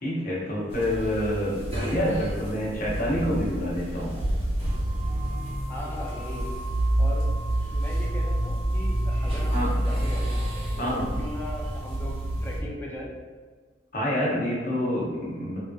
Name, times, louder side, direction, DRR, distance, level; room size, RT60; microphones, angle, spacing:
voice 1, 0.0-4.2 9.5-9.7 10.8-11.0 13.9-15.6, equal, 50° left, -6 dB, 0.9 m, -27 dB
sound 1, 0.7-12.6, right 1 dB, 30° right, 0.9 m, -28 dB
voice 2, 5.7-6.5 7.0-7.2 7.6-10.4 10.8-13.1, left 1 dB, 10° left, -3 dB, 0.4 m, -38 dB
3.4 x 2.6 x 2.3 m, 1.5 s
head